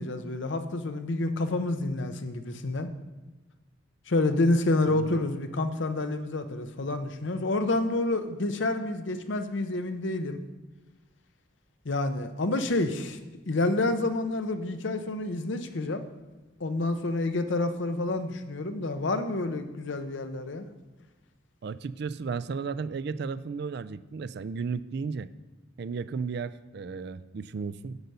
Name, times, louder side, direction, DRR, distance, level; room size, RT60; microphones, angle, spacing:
voice 1, 0.0-2.9 4.1-10.4 11.8-13.2 13.5-16.0 16.6-20.7, left 2 dB, 70° left, 8 dB, 0.7 m, -28 dB
voice 2, 4.9-5.2 21.6-25.3 25.8-28.0, right 5 dB, 55° right, 16 dB, 0.3 m, -34 dB
8.0 x 8.0 x 5.5 m, 1.2 s
head